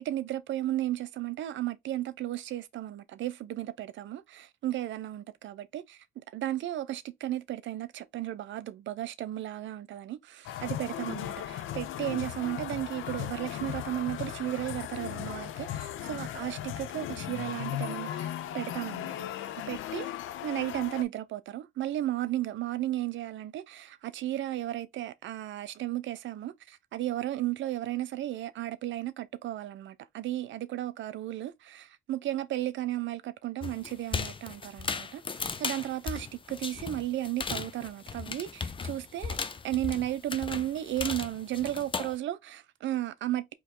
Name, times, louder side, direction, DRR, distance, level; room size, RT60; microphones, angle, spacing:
voice 1, 0.0-19.2 19.7-20.1 20.4-39.4 39.6-43.5, right 14 dB, 70° right, 0.6 m, -34 dB
sound 1, 10.4-21.0, left 12 dB, 85° left, 0.6 m, -37 dB
sound 2, 33.6-42.2, left 5 dB, 25° left, 0.6 m, -36 dB
4.5 x 3.0 x 3.7 m
cardioid pair, 90°, 20 cm